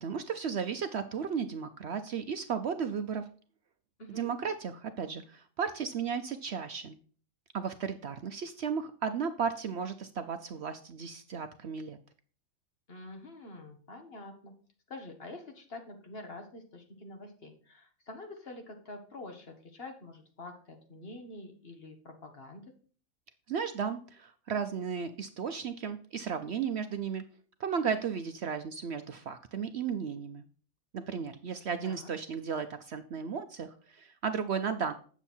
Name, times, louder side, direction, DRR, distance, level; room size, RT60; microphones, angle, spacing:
voice 1, 0.0-3.2 4.1-6.9 7.5-12.0 23.5-27.2 27.6-30.4 30.9-34.9, right 6 dB, 60° right, 9 dB, 0.8 m, -34 dB
voice 2, 12.9-14.5 14.9-22.7 31.8-32.1, left 2 dB, 45° left, 4 dB, 1.6 m, -46 dB
8.9 x 7.1 x 4.4 m, 0.43 s
omnidirectional pair, 1.4 m